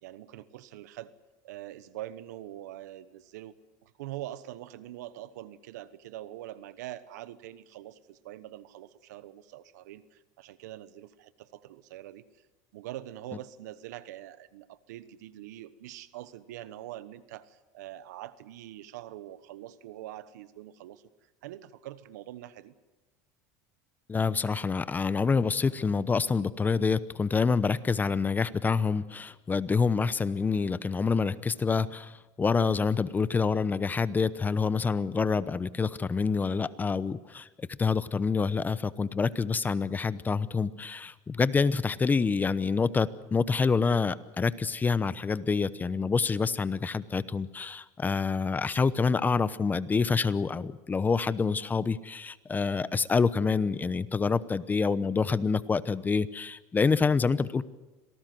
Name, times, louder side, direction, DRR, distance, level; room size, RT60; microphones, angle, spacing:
voice 1, 0.0-1.1 1.4-3.5 3.8-12.2 12.7-21.0 21.4-22.7, right 13 dB, 85° right, 15 dB, 1.2 m, -44 dB
voice 2, 24.1-57.6, left 5 dB, 20° left, 17 dB, 0.9 m, -27 dB
26.5 x 18.5 x 7.8 m, 1.1 s
supercardioid pair, 110°, 9 cm